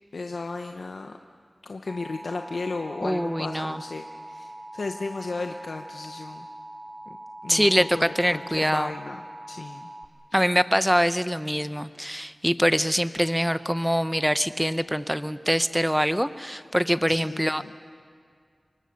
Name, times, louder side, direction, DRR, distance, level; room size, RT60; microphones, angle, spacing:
voice 1, 0.1-1.1 1.6-6.5 7.4-9.9 10.3-10.4 17.1-17.7, left 3 dB, 85° left, 5 dB, 0.8 m, -35 dB
Alarm, 1.9-10.1, right 1 dB, 20° right, 1.9 m, -42 dB
voice 2, 3.0-3.8 7.5-8.9 10.3-17.7, equal, ahead, 13 dB, 0.7 m, -24 dB
27.5 x 23.5 x 6.6 m, 2.1 s
wide cardioid pair, 75°, 0 cm